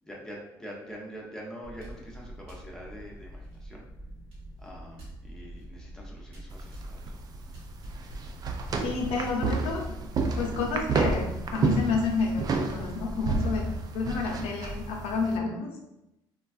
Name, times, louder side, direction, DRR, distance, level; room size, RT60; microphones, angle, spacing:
voice 1, 0.0-3.9 4.6-7.2, equal, 5° left, -3 dB, 0.6 m, -44 dB
sound 1, 1.6-9.0, right 1 dB, 75° right, 1.1 m, -45 dB
sound 2, 6.5-15.4, right 3 dB, 40° right, 0.3 m, -30 dB
voice 2, 8.8-9.8 10.4-13.6 13.9-15.7, left 4 dB, 80° left, 0 dB, 0.7 m, -30 dB
3.3 x 2.3 x 2.4 m, 0.87 s
cardioid pair, 95°, 10 cm